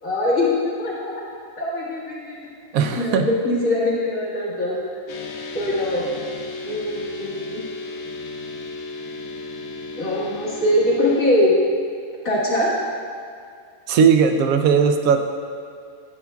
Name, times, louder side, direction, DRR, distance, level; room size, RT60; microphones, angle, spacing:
voice 1, 0.0-1.2 1.6-2.4 2.7-4.8 5.5-6.1 6.6-7.6 10.0-11.5 12.2-12.7, left 1 dB, 75° left, -7 dB, 2.0 m, -22 dB
voice 2, 2.7-3.3 13.9-15.2, right 6 dB, 80° right, 6 dB, 1.0 m, -17 dB
sound 1, 5.1-11.2, left 3 dB, 60° left, 0.7 m, -34 dB
9.7 x 7.0 x 2.3 m, 2.3 s
omnidirectional pair, 1.4 m